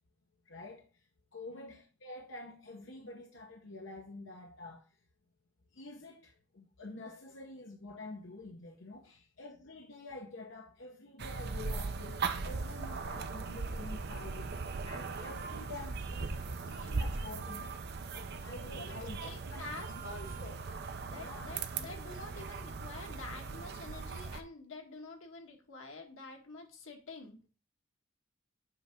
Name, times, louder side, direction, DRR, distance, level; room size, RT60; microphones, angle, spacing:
voice 1, 0.5-0.8 1.3-4.8 5.7-17.8 18.1-19.2 19.5-20.0 21.2-21.5, left 2 dB, 65° left, 0.9 m, -48 dB
sound 1, 11.2-24.4, right 4 dB, 55° right, 0.6 m, -39 dB
voice 2, 18.8-20.6 21.0-27.4, left 2 dB, 90° left, 1.5 m, -48 dB
7.8 x 3.4 x 5.0 m
head